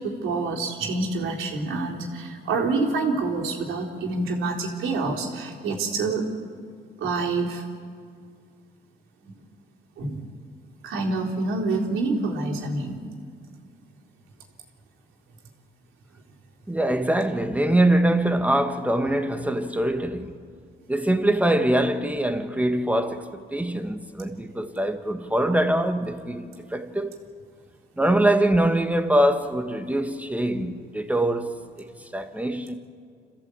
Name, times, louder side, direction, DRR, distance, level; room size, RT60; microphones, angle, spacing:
voice 1, 0.0-6.2 7.0-7.6 9.2-9.3 10.0-10.2 10.8-13.0, right 3 dB, 85° right, 3.8 m, -27 dB
voice 2, 16.7-20.3 20.9-27.2 28.0-31.9 32.1-32.8, right 1 dB, 5° right, 1.6 m, -23 dB
27.5 x 15.0 x 8.4 m
cardioid pair, 90°, 20 cm